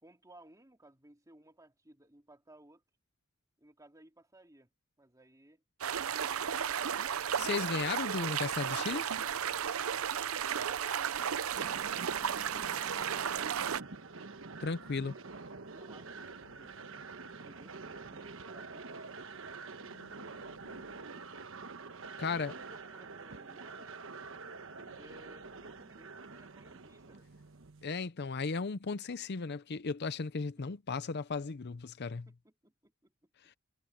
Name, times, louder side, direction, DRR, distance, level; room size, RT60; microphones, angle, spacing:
voice 1, 0.0-2.8 3.6-4.7 5.0-5.6 15.0-15.5 15.7-16.8 17.2-18.9 22.1-24.0 24.9-27.3 32.1-33.3, right 1 dB, 15° right, 2.6 m, -60 dB
sound 1, 5.8-13.8, right 8 dB, 80° right, 0.6 m, -34 dB
voice 2, 7.4-9.1 14.6-15.1 22.2-22.5 27.8-32.3, left 4 dB, 50° left, 0.6 m, -35 dB
sound 2, 11.0-14.0 15.5-18.5 19.1-19.4 19.7-22.7 24.2-26.8 27.1-27.4, left 1 dB, 80° left, 5.9 m, -67 dB
sound 3, 11.5-27.9, right 4 dB, 65° right, 1.2 m, -47 dB
head